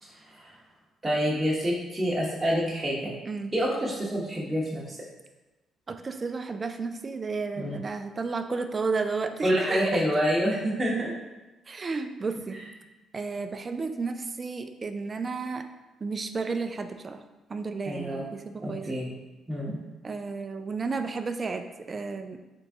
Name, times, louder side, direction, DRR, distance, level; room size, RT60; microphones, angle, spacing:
voice 1, 0.0-0.5 1.0-3.1 3.5-5.0 7.6-7.8 9.4-11.1 12.5-12.6 17.8-18.2 18.6-19.1 19.5-19.8, equal, 20° right, -6 dB, 1.0 m, -27 dB
voice 2, 5.9-10.0 11.7-12.6 13.1-15.7 16.0-17.2 17.5-18.4 18.7-18.9 20.0-22.4, right 4 dB, 40° right, 8 dB, 0.3 m, -32 dB
3.8 x 3.5 x 2.7 m, 1.1 s
hypercardioid pair, 55°, 0 cm